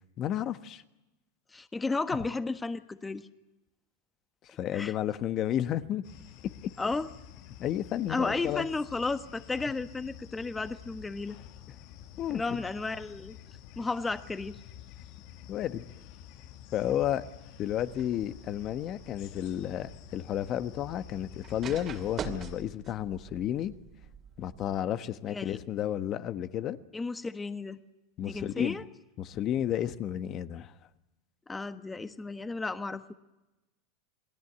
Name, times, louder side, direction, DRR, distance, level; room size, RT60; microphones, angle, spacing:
voice 1, 0.2-0.8 4.6-6.0 6.6-6.7 7.6-8.7 12.2-12.6 15.5-15.8 16.7-17.2 17.6-23.7 24.4-26.8 28.2-28.8 29.2-30.7, left 11 dB, 40° left, 12 dB, 1.3 m, -32 dB
voice 2, 1.5-3.3 4.7-4.9 6.8-7.1 8.1-11.4 12.3-13.4 13.8-14.6 25.3-25.6 26.9-27.8 28.2-28.8 31.5-33.1, left 3 dB, 15° left, 11 dB, 1.4 m, -33 dB
sound 1, 6.0-22.6, left 10 dB, 55° left, 1.6 m, -50 dB
sound 2, 17.6-24.8, right 7 dB, 30° right, 2.6 m, -45 dB
28.0 x 19.5 x 8.2 m, 1.0 s
hypercardioid pair, 115°, 0 cm